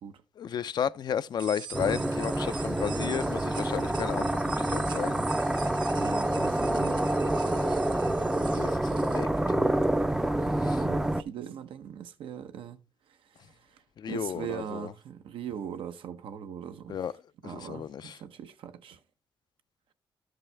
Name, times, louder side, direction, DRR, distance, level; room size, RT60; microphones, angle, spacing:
voice 1, 0.4-5.2 7.6-7.7 8.5-9.3 10.6-10.8 14.0-14.9 16.9-17.1 17.4-18.2, left 8 dB, 55° left, 0.4 m, -33 dB
sound 1, 1.4-9.2, right 7 dB, 60° right, 0.9 m, -44 dB
sound 2, 1.7-11.2, right 1 dB, 5° right, 0.4 m, -27 dB
voice 2, 6.0-7.0 10.8-17.0 17.4-19.0, right 8 dB, 80° right, 0.8 m, -40 dB
13.0 x 5.5 x 3.3 m
cardioid pair, 125°, 9 cm